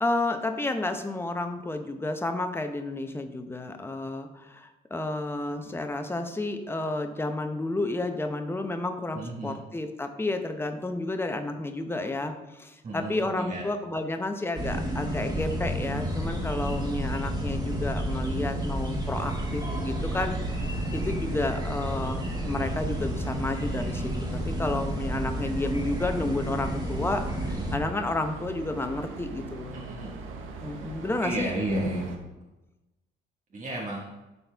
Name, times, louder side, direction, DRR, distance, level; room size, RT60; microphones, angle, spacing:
voice 1, 0.0-20.6 20.9-29.8 30.6-31.5, left 2 dB, 10° left, 6 dB, 0.8 m, -31 dB
voice 2, 9.1-9.6 12.8-13.6 29.7-30.1 31.2-32.1 33.5-34.1, right 1 dB, 40° right, -4 dB, 1.6 m, -32 dB
sound 1, 14.5-27.8, equal, 20° right, 2.1 m, -31 dB
sound 2, 19.1-32.2, right 5 dB, 85° right, 1.1 m, -42 dB
12.0 x 4.3 x 3.5 m, 1.0 s
cardioid pair, 90°, 20 cm